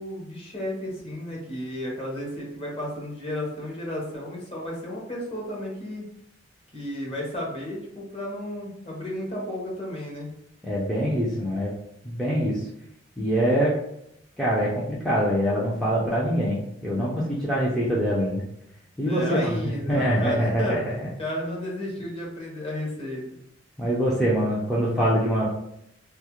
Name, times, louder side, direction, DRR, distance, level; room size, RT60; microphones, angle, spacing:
voice 1, 0.0-6.1 6.7-10.3 19.0-20.8 21.2-23.4, left 1 dB, 30° left, -3 dB, 0.7 m, -33 dB
voice 2, 10.6-11.7 12.0-12.6 13.2-13.7 14.4-18.4 19.0-19.6 19.9-20.8 23.8-25.5, equal, ahead, -7 dB, 0.4 m, -24 dB
2.3 x 2.0 x 2.8 m, 0.77 s
head